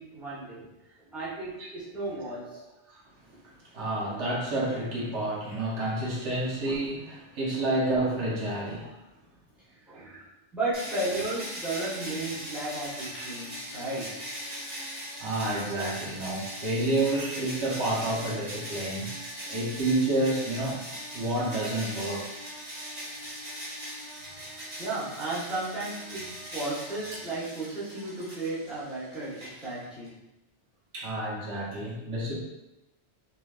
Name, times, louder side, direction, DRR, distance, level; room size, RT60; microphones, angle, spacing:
voice 1, 0.0-2.6 7.6-7.7 9.8-10.2 10.5-14.3 24.8-30.1, right 2 dB, ahead, -11 dB, 0.9 m, -34 dB
voice 2, 3.7-8.9 9.9-10.2 15.2-19.1 19.5-20.8 21.1-22.3 30.9-32.4, right 2 dB, 85° right, -5 dB, 1.2 m, -29 dB
sound 1, 10.7-30.1, equal, 40° right, 1.3 m, -40 dB
sound 2, 12.8-14.0 15.7-16.3 17.0-17.7, right 1 dB, 45° left, 0.9 m, -46 dB
3.2 x 2.8 x 2.3 m, 0.93 s
omnidirectional pair, 1.1 m